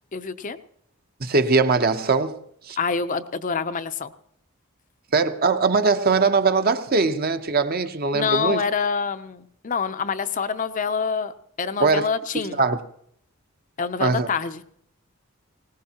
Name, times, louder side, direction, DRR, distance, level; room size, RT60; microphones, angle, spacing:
voice 1, 0.1-0.6 2.8-4.1 8.1-12.6 13.8-14.6, left 5 dB, 35° left, 0.5 m, -26 dB
voice 2, 1.2-2.4 2.7-2.8 5.1-8.6 11.8-12.1 12.6-12.8 14.0-14.3, right 4 dB, 45° right, 0.8 m, -21 dB
20.0 x 18.5 x 2.9 m
head